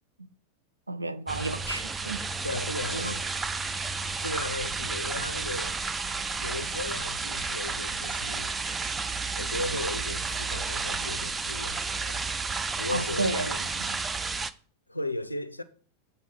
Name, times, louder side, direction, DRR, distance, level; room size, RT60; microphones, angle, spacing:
voice 1, 0.9-2.3 2.9-3.2 12.9-14.0, right 2 dB, 80° right, 0.4 m, -32 dB
sound 1, 1.3-14.5, right 4 dB, 15° right, 0.4 m, -32 dB
voice 2, 2.4-3.3 4.2-5.8 6.4-8.5 9.4-12.3 12.8-13.7 14.9-15.6, left 2 dB, 85° left, 0.5 m, -35 dB
8.1 x 3.7 x 5.8 m
figure-of-eight pair, 90°, 0 cm